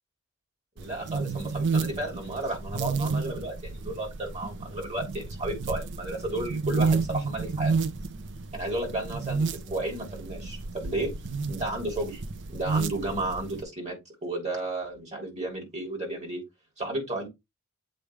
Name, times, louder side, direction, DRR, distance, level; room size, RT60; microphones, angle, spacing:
voice 1, 0.8-7.7 8.5-11.1 11.5-12.2 12.5-14.0 14.2-16.4 16.8-17.3, right 2 dB, 30° right, 0 dB, 3.6 m, -33 dB
sound 1, 0.8-13.6, right 4 dB, 55° right, 0.6 m, -31 dB
7.6 x 3.3 x 4.8 m, 0.21 s
head